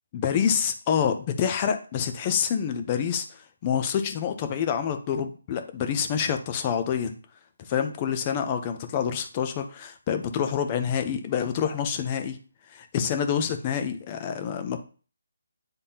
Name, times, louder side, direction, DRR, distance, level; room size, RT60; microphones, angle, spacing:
voice 1, 0.1-7.2 7.6-12.4 12.7-14.8, left 8 dB, 25° left, 7 dB, 0.8 m, -27 dB
10.0 x 3.5 x 2.9 m, 0.38 s
figure-of-eight pair, 160°, 0 cm